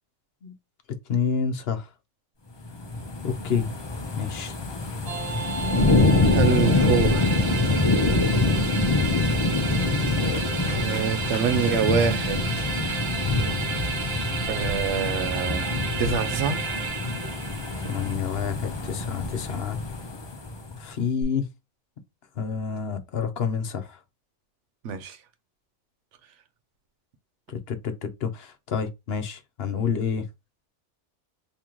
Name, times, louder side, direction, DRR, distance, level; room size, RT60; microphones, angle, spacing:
voice 1, 1.1-1.9 3.2-3.6 4.1-4.6 17.8-19.8 20.8-21.5 22.4-24.0 27.5-30.2, left 6 dB, 60° left, 0.9 m, -28 dB
sound 1, 2.6-20.8 21.2-21.3, left 2 dB, 30° left, 0.5 m, -25 dB
sound 2, 5.1-18.1, right 5 dB, 65° right, 1.0 m, -32 dB
voice 2, 6.3-7.6 10.6-12.7 14.5-16.6 24.8-25.2, right 7 dB, 85° right, 1.0 m, -26 dB
3.8 x 2.8 x 3.0 m
omnidirectional pair, 1.2 m